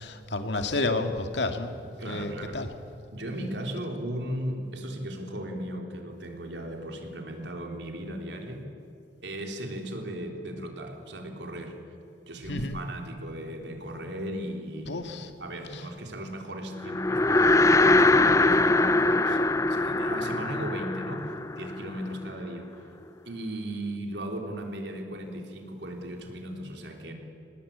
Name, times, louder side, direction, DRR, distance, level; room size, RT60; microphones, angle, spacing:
voice 1, 0.0-1.7 2.1-2.7 12.5-12.8 14.9-15.3, left 2 dB, 85° left, 6 dB, 2.1 m, -30 dB
voice 2, 2.0-2.6 3.1-8.7 9.2-11.8 12.3-15.0 15.4-19.4 19.7-22.9 23.2-27.1, right 1 dB, 85° right, 3 dB, 3.6 m, -36 dB
sound 1, 16.8-22.3, left 2 dB, 20° left, 0.6 m, -22 dB
26.0 x 20.0 x 8.7 m, 2.6 s
head